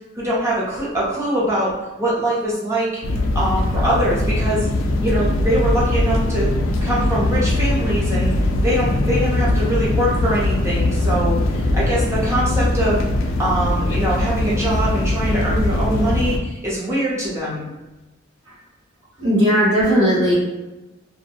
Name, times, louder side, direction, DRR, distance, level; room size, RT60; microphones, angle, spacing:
voice 1, 0.1-1.7 2.0-3.0 3.3-4.7 5.0-6.5 6.8-8.3 8.6-13.0 13.4-17.7, right 1 dB, 15° right, -7 dB, 0.7 m, -22 dB
sound 1, 3.0-16.4, left 1 dB, 70° left, 0.3 m, -21 dB
voice 2, 19.2-20.3, equal, 80° right, -12 dB, 1.1 m, -16 dB
2.5 x 2.1 x 2.7 m, 1.0 s
head